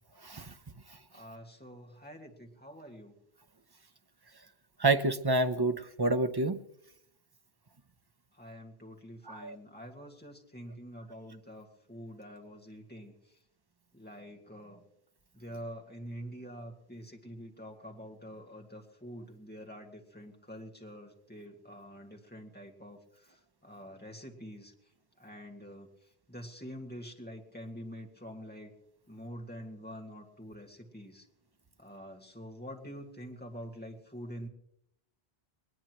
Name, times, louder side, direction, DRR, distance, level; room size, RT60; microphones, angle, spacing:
voice 1, 0.2-0.5 4.8-6.6 9.3-9.6, right 2 dB, 30° right, 10 dB, 0.6 m, -28 dB
voice 2, 1.1-3.2 8.3-13.4 13.9-14.8 15.3-24.7 25.2-28.7 29.1-31.3 31.8-34.5, equal, 10° left, 0 dB, 1.9 m, -46 dB
21.0 x 19.0 x 3.0 m, 0.77 s
omnidirectional pair, 1.1 m